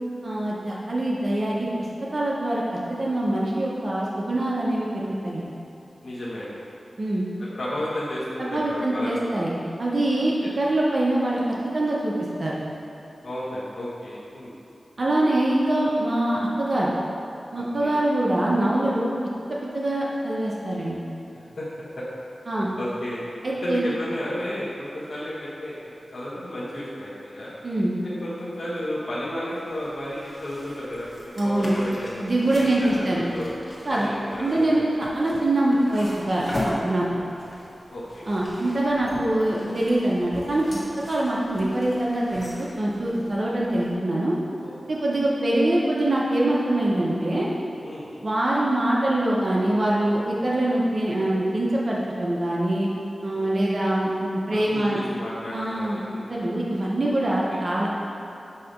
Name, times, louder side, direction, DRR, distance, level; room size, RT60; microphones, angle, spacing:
voice 1, 0.2-1.7 2.1-2.6 3.0-5.5 7.0-7.2 8.4-9.5 9.8-11.4 11.7-12.1 12.4-12.6 15.0-16.9 17.5-19.1 19.5-21.0 22.5-22.7 23.4-23.9 27.6-27.9 31.4-31.7 32.2-33.2 33.9-34.1 34.4-36.5 36.8-37.1 38.3-40.8 41.1-44.4 44.9-47.5 48.2-52.9 53.2-55.0 55.5-56.0 56.3-57.9, right 1 dB, 55° right, -5 dB, 0.8 m, -24 dB
voice 2, 6.0-6.5 7.4-9.4 10.4-10.5 13.2-14.5 17.6-18.0 21.3-21.7 22.0-22.1 22.7-23.2 23.6-27.5 28.0-32.2 32.6-33.5 33.9-35.0 37.9-38.2 38.6-38.7 44.6-45.2 47.8-48.1 53.3-54.0 54.5-56.3 57.2-57.6, left 1 dB, 85° left, -10 dB, 1.1 m, -33 dB
sound 1, 29.7-44.0, left 1 dB, 35° left, 1.4 m, -38 dB
6.5 x 2.9 x 5.1 m, 2.9 s
wide cardioid pair, 60°, 0 cm